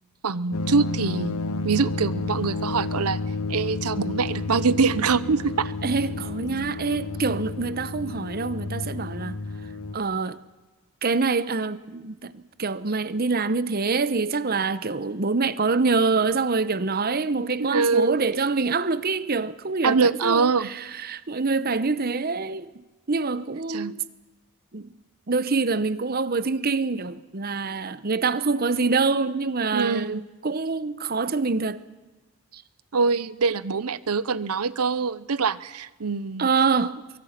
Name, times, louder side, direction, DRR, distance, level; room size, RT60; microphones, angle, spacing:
voice 1, 0.2-1.4 1.6-3.2 3.5-5.7 17.6-18.2 19.8-20.7 23.7-23.9 29.7-30.2 32.9-36.5, right 4 dB, 85° right, 0.8 m, -24 dB
sound 1, 0.5-10.0, left 3 dB, 80° left, 1.4 m, -31 dB
voice 2, 5.8-9.4 9.9-10.4 11.0-22.7 23.1-24.0 24.7-24.9 25.3-31.8 32.5-32.6 36.4-37.0, right 4 dB, 45° right, 0.9 m, -25 dB
24.0 x 23.5 x 5.9 m
head